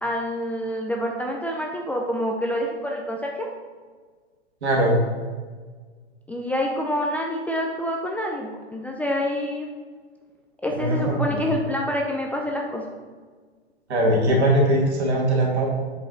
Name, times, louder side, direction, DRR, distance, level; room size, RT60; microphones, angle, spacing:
voice 1, 0.0-3.5 6.3-9.7 10.6-12.8, left 1 dB, 5° left, 0 dB, 0.4 m, -27 dB
voice 2, 4.6-5.0 10.7-11.4 13.9-15.7, right 1 dB, 75° right, -1 dB, 2.2 m, -20 dB
7.4 x 5.0 x 4.0 m, 1.5 s
hypercardioid pair, 115°, 33 cm